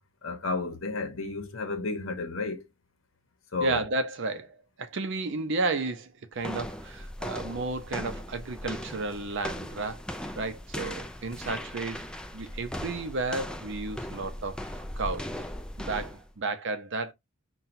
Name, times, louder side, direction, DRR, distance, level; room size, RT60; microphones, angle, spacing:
voice 1, 0.2-2.7 3.5-3.8, left 3 dB, 65° left, 1.0 m, -32 dB
voice 2, 3.6-10.0 10.4-12.1 12.3-15.3 15.8-17.1, right 3 dB, 60° right, 0.6 m, -32 dB
sound 1, 6.4-16.3, left 1 dB, 5° left, 0.3 m, -38 dB
5.7 x 2.3 x 2.6 m
head